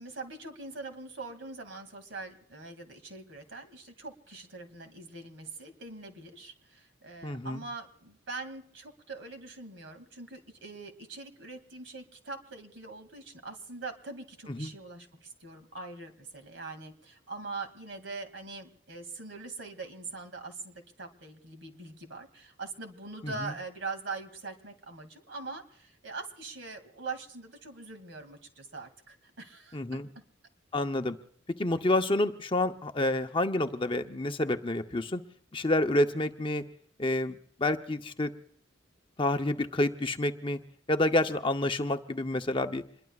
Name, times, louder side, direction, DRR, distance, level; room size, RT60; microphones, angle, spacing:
voice 1, 0.0-30.0, right 3 dB, 75° right, 7 dB, 2.4 m, -43 dB
voice 2, 7.2-7.6 14.6-14.7 23.2-23.5 29.7-30.1 30.7-31.2 31.6-35.2 35.5-36.6 37.0-38.3 39.2-40.6 40.9-42.8, left 1 dB, 25° left, 6 dB, 0.8 m, -28 dB
27.0 x 22.0 x 2.4 m, 0.66 s
head